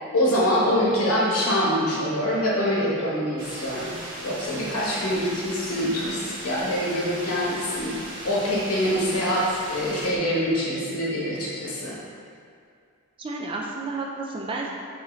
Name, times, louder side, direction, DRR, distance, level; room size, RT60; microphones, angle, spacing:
voice 1, 0.1-3.9 4.2-12.0, equal, 90° left, -6 dB, 1.0 m, -25 dB
sound 1, 3.4-10.1, right 1 dB, 55° right, 0.7 m, -38 dB
voice 2, 13.2-14.7, right 3 dB, 25° right, -1 dB, 0.3 m, -31 dB
4.7 x 2.7 x 3.1 m, 2.3 s
head